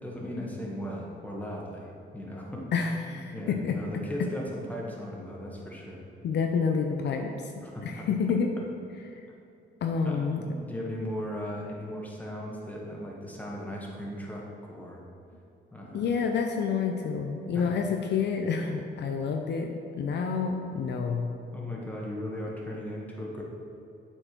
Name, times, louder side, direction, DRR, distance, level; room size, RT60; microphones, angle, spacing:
voice 1, 0.0-2.6 2.9-6.0 7.6-8.0 10.0-15.0 15.7-16.1 17.5-17.6 21.5-23.4, equal, 10° left, -3 dB, 1.5 m, -37 dB
voice 2, 2.7-3.7 6.2-7.5 7.8-8.5 9.8-10.4 15.9-21.3, left 5 dB, 60° left, 4 dB, 0.6 m, -28 dB
7.8 x 4.6 x 4.5 m, 2.7 s
cardioid pair, 90°, 20 cm